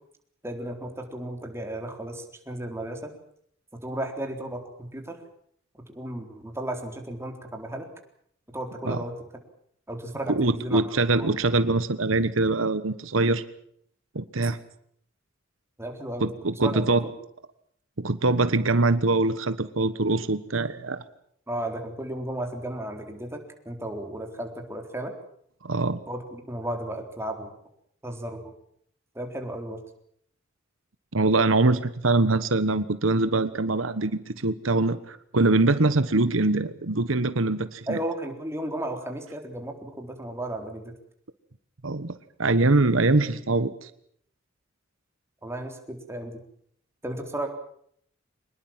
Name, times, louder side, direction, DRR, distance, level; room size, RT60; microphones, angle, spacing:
voice 1, 0.4-3.1 3.8-5.2 5.9-7.9 8.5-9.1 9.9-10.8 11.1-11.3 15.8-16.3 16.6-17.1 21.5-25.1 26.1-27.5 28.0-28.5 29.1-29.8 37.9-40.9 45.4-46.4 47.0-47.5, right 1 dB, 15° right, 3 dB, 3.9 m, -34 dB
voice 2, 10.3-13.4 14.1-14.6 16.2-17.0 18.0-21.0 25.6-26.0 31.1-38.0 41.8-43.9, right 2 dB, 85° right, 12 dB, 1.3 m, -23 dB
24.5 x 20.5 x 7.5 m, 0.66 s
head